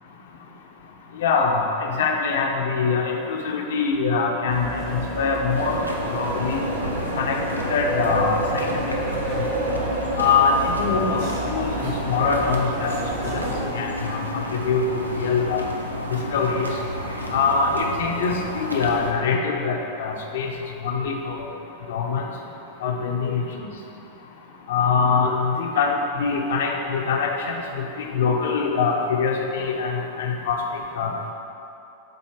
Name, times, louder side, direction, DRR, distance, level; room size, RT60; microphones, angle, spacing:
voice 1, 1.2-5.8 6.1-6.6 7.2-7.4 7.7-8.7 9.3-9.5 10.2-11.2 11.5-12.9 13.3-15.7 16.1-16.7 17.3-20.5 20.8-21.5 21.9-22.2 22.8-23.7 24.7-31.1, left 5 dB, 60° left, 1 dB, 0.6 m, -23 dB
sound 1, 4.5-13.7, right 2 dB, 50° right, 0.9 m, -30 dB
sound 2, 5.5-19.1, left 1 dB, 85° right, 0.5 m, -31 dB
7.7 x 2.8 x 4.5 m, 2.8 s
figure-of-eight pair, 90°, 0 cm